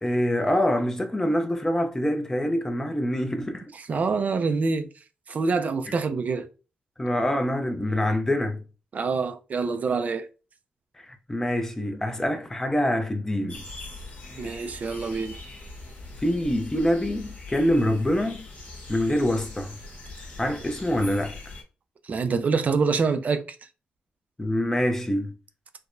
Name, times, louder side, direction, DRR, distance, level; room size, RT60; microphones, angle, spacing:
voice 1, 0.0-3.7 7.0-8.6 11.0-13.6 16.2-18.5 18.9-19.8 20.4-21.4 24.4-25.3, left 1 dB, 15° left, 0.5 m, -25 dB
voice 2, 3.7-4.9 5.3-6.5 8.9-10.3 14.4-15.3 22.0-23.4, right 4 dB, 45° right, 0.4 m, -26 dB
sound 1, 13.5-21.6, left 3 dB, 50° left, 1.4 m, -41 dB
4.4 x 2.1 x 2.5 m
wide cardioid pair, 130°, 4 cm